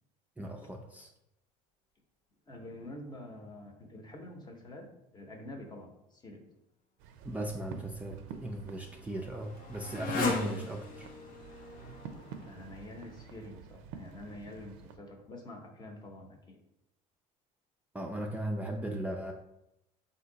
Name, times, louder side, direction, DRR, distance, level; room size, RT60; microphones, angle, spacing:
voice 1, 0.4-1.1 7.2-11.1 17.9-19.3, right 1 dB, 10° right, 0 dB, 0.4 m, -37 dB
voice 2, 2.5-4.9 5.1-6.4 12.4-16.6, left 1 dB, 30° left, 2 dB, 0.9 m, -47 dB
sound 1, 7.0-15.0, right 7 dB, 85° right, 0.5 m, -49 dB
Motorcycle, 8.1-13.5, left 4 dB, 65° left, 0.8 m, -39 dB
4.1 x 2.7 x 3.9 m, 0.84 s
supercardioid pair, 100°, 16 cm